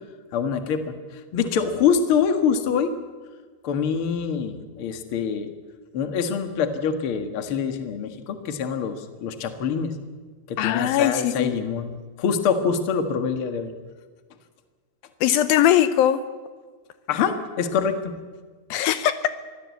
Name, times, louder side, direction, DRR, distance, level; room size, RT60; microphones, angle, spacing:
voice 1, 0.3-0.9 1.3-2.9 3.6-5.5 5.9-9.9 10.5-11.9 12.2-13.7 17.1-18.1, left 6 dB, 45° left, 8 dB, 1.9 m, -25 dB
voice 2, 10.6-11.5 15.2-16.2 18.7-19.2, left 11 dB, 75° left, 12 dB, 2.5 m, -20 dB
23.5 x 17.5 x 8.4 m, 1.5 s
omnidirectional pair, 4.4 m